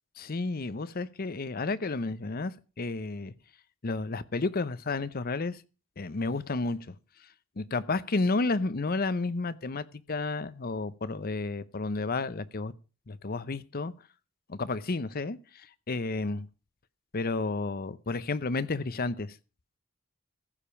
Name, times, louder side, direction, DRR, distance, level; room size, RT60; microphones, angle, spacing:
voice 1, 0.2-2.5 2.8-3.3 3.8-5.6 6.0-6.8 7.6-12.7 13.1-13.9 14.5-15.4 15.9-16.5 17.1-19.3, left 3 dB, 45° left, 0.7 m, -31 dB
15.0 x 5.2 x 7.0 m
head